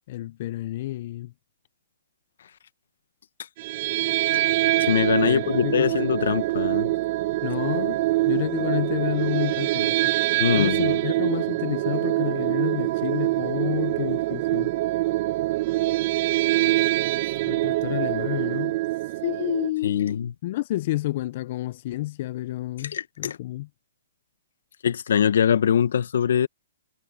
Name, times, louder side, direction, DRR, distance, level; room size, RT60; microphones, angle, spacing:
voice 1, 0.1-1.3 5.2-5.9 7.4-10.1 10.5-14.7 17.5-18.8 19.2-20.2 20.4-23.7, left 16 dB, 50° left, 0.7 m, -30 dB
sound 1, 3.6-19.7, right 18 dB, 45° right, 1.1 m, -24 dB
voice 2, 4.9-6.9 10.4-11.0 19.8-20.3 22.9-23.4 24.8-26.5, left 8 dB, 70° left, 1.3 m, -23 dB
hypercardioid pair, 145°, 0 cm